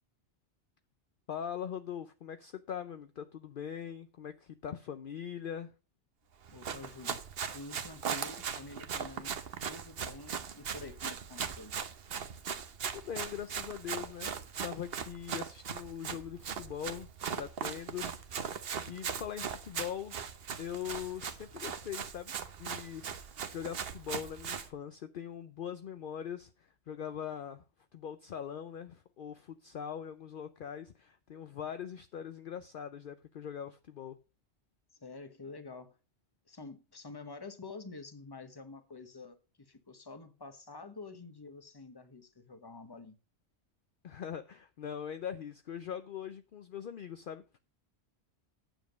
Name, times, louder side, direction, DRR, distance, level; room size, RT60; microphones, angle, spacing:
voice 1, 1.3-5.7 12.9-14.4 14.6-17.1 17.4-18.6 18.9-20.2 20.6-22.3 22.6-27.6 27.9-34.2 44.0-47.6, left 8 dB, 55° left, 0.7 m, -41 dB
voice 2, 6.5-7.2 7.5-11.9 35.0-36.0 36.5-43.2, left 3 dB, 20° left, 1.1 m, -48 dB
Run, 6.5-24.7, right 7 dB, 60° right, 1.1 m, -39 dB
9.1 x 7.4 x 5.1 m
omnidirectional pair, 1.1 m